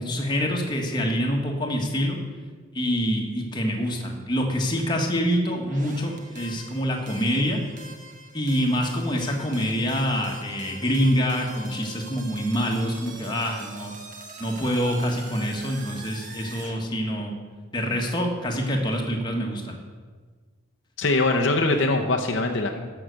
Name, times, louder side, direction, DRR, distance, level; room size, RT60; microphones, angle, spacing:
voice 1, 0.0-2.2 2.7-7.6 8.3-13.9 14.4-17.3 17.7-19.8, equal, 20° left, 1 dB, 1.4 m, -26 dB
sound 1, 5.7-16.8, right 2 dB, 35° right, 1.3 m, -43 dB
voice 2, 21.0-22.9, left 2 dB, 60° left, 2 dB, 0.8 m, -22 dB
13.5 x 5.8 x 6.4 m, 1.5 s
head